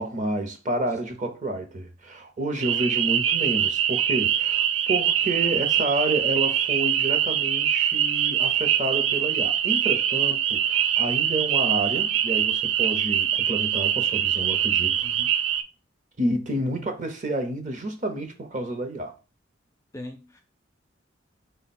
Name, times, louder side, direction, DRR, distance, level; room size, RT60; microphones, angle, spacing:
voice 1, 0.0-15.1 16.2-19.2, right 2 dB, 40° right, 0.7 m, -29 dB
sound 1, 2.6-15.6, right 10 dB, 75° right, 0.4 m, -23 dB
voice 2, 15.0-15.3 19.9-20.4, left 2 dB, 15° left, 0.4 m, -41 dB
4.3 x 2.2 x 4.2 m
head